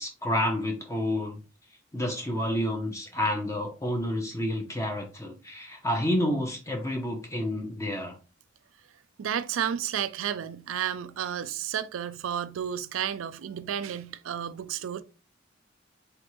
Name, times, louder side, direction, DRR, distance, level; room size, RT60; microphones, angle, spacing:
voice 1, 0.0-1.4 1.9-8.2, left 1 dB, 15° left, 0.7 m, -29 dB
voice 2, 9.2-15.0, right 9 dB, 90° right, 0.4 m, -32 dB
3.9 x 3.4 x 3.1 m
head